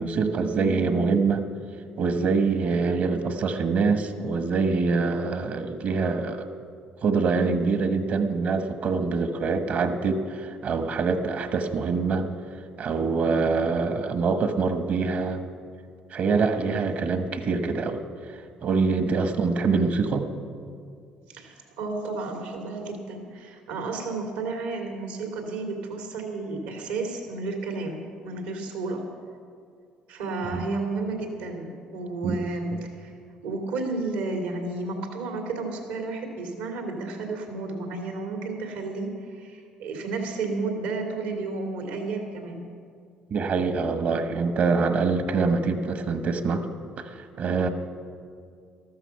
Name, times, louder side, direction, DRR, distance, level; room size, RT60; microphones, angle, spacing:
voice 1, 0.0-1.4 2.0-6.5 7.0-12.3 12.8-15.4 16.1-18.0 18.6-20.3 30.4-30.6 32.2-32.4 43.3-46.6 47.0-47.1 47.4-47.7, right 4 dB, 60° right, 8 dB, 1.3 m, -24 dB
voice 2, 21.3-29.1 30.1-33.1 33.4-42.6, right 3 dB, 85° right, 2 dB, 2.5 m, -32 dB
14.0 x 13.0 x 5.9 m, 2.2 s
hypercardioid pair, 60°, 3 cm